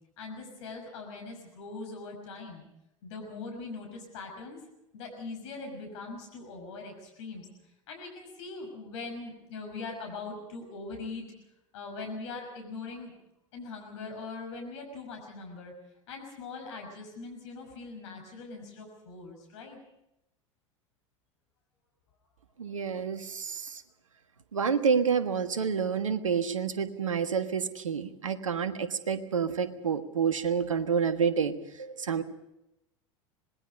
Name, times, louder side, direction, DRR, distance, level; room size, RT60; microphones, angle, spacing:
voice 1, 0.2-2.6 3.0-4.6 4.9-7.5 7.9-11.3 11.7-13.1 13.5-15.7 16.1-19.8, left 3 dB, 65° left, 3 dB, 5.9 m, -41 dB
voice 2, 22.6-23.8 24.5-32.2, right 6 dB, 85° right, 11 dB, 1.5 m, -29 dB
26.5 x 20.0 x 5.3 m, 0.86 s
hypercardioid pair, 85°, 16 cm